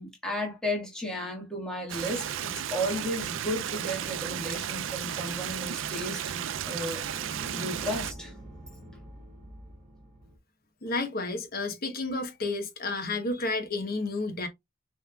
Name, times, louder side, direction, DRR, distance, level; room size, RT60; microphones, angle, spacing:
voice 1, 0.0-7.0 7.5-8.3, equal, 5° left, 1.6 m, -34 dB
Stream, 1.9-8.1, right 9 dB, 80° right, 0.4 m, -34 dB
sound 1, 5.1-10.4, right 1 dB, 45° right, 2.3 m, -47 dB
voice 2, 10.8-14.5, left 3 dB, 50° left, 1.0 m, -31 dB
6.6 x 3.3 x 2.3 m
head